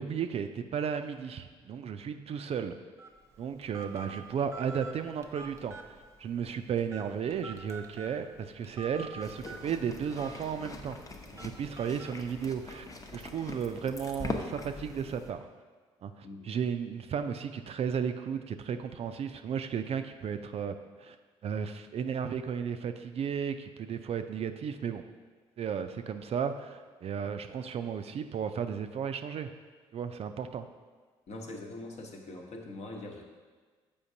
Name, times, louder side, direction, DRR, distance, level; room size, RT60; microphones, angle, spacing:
voice 1, 0.0-2.7 3.4-11.0 11.4-12.9 13.1-15.5 16.0-21.2 21.4-25.0 25.6-29.5 29.9-30.7, right 7 dB, 45° right, 8 dB, 0.4 m, -34 dB
Telephone, 3.0-12.8, right 3 dB, 20° right, 0.7 m, -48 dB
sound 1, 9.2-15.3, left 3 dB, 25° left, 0.7 m, -42 dB
voice 2, 31.3-33.2, left 2 dB, 50° left, 1 dB, 0.9 m, -42 dB
7.0 x 4.9 x 2.7 m, 1.4 s
hypercardioid pair, 50°, 14 cm